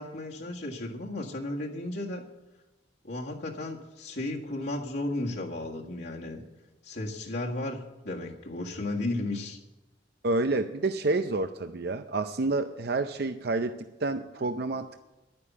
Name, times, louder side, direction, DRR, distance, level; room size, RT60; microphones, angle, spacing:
voice 1, 0.0-2.2 3.0-6.4 6.8-9.6, left 2 dB, 70° left, -2 dB, 1.7 m, -34 dB
voice 2, 10.2-13.7 14.0-15.0, right 3 dB, 60° right, 9 dB, 0.6 m, -29 dB
11.5 x 9.7 x 7.1 m, 1.0 s
head